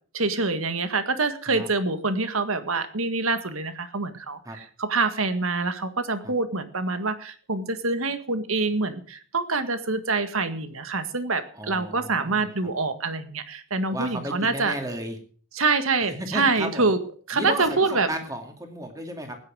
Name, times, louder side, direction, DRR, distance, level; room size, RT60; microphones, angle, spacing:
voice 1, 0.1-4.4 4.8-14.7 15.5-17.0 17.3-18.1, right 3 dB, 80° right, 10 dB, 1.8 m, -25 dB
voice 2, 11.5-12.5 13.9-15.2 16.1-16.9 17.3-19.4, right 1 dB, 15° right, 4 dB, 2.5 m, -34 dB
16.0 x 10.0 x 6.3 m, 0.44 s
head